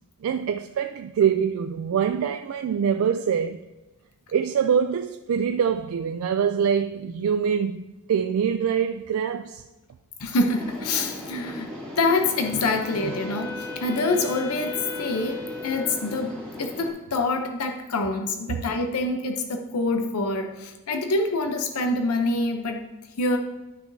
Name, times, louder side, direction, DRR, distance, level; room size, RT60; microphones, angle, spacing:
voice 1, 0.2-3.6 4.3-9.6 18.5-18.6, right 7 dB, 65° right, 0.3 m, -24 dB
voice 2, 10.2-11.7 12.0-22.8 23.2-23.4, left 2 dB, 85° left, 0.7 m, -26 dB
sound 1, 10.5-16.9, left 1 dB, 5° left, 2.5 m, -38 dB
Wind instrument woodwind instrument, 12.2-16.2, left 3 dB, 35° left, 2.0 m, -37 dB
11.5 x 6.0 x 2.7 m
head